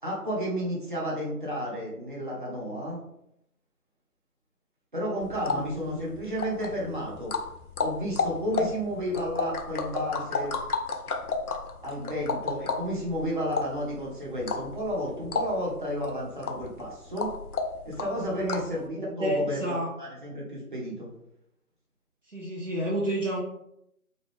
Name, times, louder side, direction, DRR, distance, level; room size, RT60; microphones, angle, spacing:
voice 1, 0.0-3.0 4.9-7.3 7.8-10.6 11.8-17.3 17.8-21.1, equal, 30° right, -6 dB, 1.3 m, -32 dB
sound 1, 5.2-18.8, left 4 dB, 70° left, 0.7 m, -33 dB
voice 2, 5.4-6.1 8.6-8.7 18.4-18.6 18.9-19.9 22.3-23.4, equal, 55° right, -4 dB, 1.0 m, -31 dB
4.3 x 2.8 x 3.5 m, 0.78 s
figure-of-eight pair, 180°, 46 cm